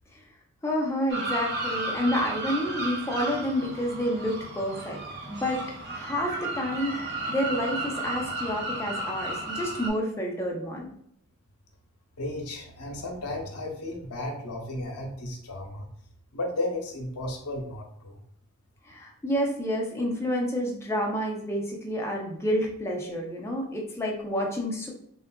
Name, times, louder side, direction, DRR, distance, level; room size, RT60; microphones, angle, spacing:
voice 1, 0.6-5.0 5.3-5.6 5.9-7.0 7.3-10.9 18.9-24.9, equal, 10° left, -1 dB, 0.5 m, -29 dB
sound 1, 1.1-9.9, right 2 dB, 50° right, 0.5 m, -33 dB
voice 2, 12.2-15.9 16.3-18.2, left 1 dB, 90° left, 2 dB, 0.7 m, -34 dB
3.5 x 2.3 x 2.2 m, 0.68 s
head